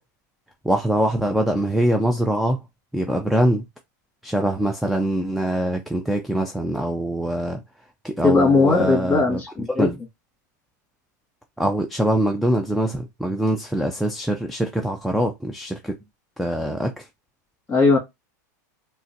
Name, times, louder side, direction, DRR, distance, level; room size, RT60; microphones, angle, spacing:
voice 1, 0.6-2.6 2.9-3.6 4.2-7.6 8.0-9.4 9.8-10.0 11.6-15.9 16.4-17.1, right 1 dB, ahead, 0.4 m, -23 dB
voice 2, 8.2-9.9 17.7-18.0, left 3 dB, 15° left, 1.6 m, -18 dB
3.7 x 2.2 x 2.6 m
supercardioid pair, 120°, 10 cm